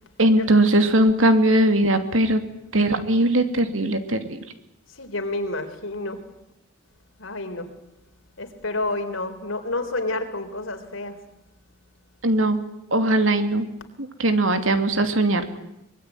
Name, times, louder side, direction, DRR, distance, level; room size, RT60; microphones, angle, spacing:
voice 1, 0.2-2.4 2.7-4.4 12.2-12.6 12.9-13.7 14.0-15.6, right 1 dB, 90° right, 8 dB, 2.7 m, -20 dB
voice 2, 4.9-6.2 7.2-7.7 8.4-11.2, left 2 dB, 85° left, 6 dB, 3.9 m, -29 dB
24.0 x 22.0 x 9.4 m, 0.84 s
head